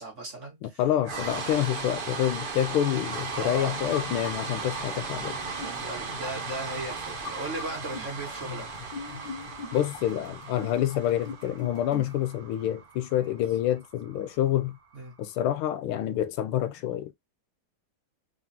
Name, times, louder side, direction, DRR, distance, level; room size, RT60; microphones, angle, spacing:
voice 1, 0.0-0.8 3.4-3.8 5.6-8.9 13.2-13.3 14.9-15.1, right 2 dB, 40° right, 1.6 m, -37 dB
voice 2, 0.6-5.4 9.7-14.8 15.2-17.1, left 12 dB, 85° left, 1.5 m, -27 dB
sound 1, 1.0-15.1, right 4 dB, 65° right, 0.5 m, -37 dB
sound 2, 3.8-12.3, left 5 dB, 60° left, 1.3 m, -43 dB
3.8 x 3.6 x 2.7 m
omnidirectional pair, 2.4 m